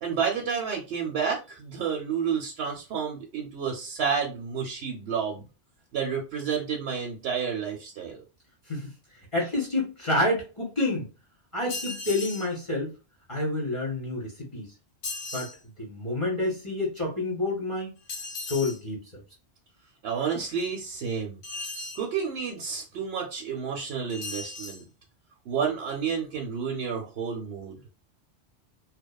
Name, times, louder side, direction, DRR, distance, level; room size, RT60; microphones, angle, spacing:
voice 1, 0.0-5.5 5.9-8.2 20.0-21.4 22.0-24.8 25.5-27.8, right 6 dB, 70° right, 0 dB, 0.8 m, -30 dB
voice 2, 9.3-11.1 11.5-12.9 13.3-14.7 15.3-15.5 15.8-17.9 18.4-19.2, left 2 dB, 35° left, -3 dB, 0.7 m, -28 dB
sound 1, 11.7-12.5 15.0-15.6 18.1-18.8 21.4-22.1 24.1-24.8, left 3 dB, 85° left, 0.9 m, -36 dB
2.8 x 2.0 x 2.2 m, 0.31 s
omnidirectional pair, 1.1 m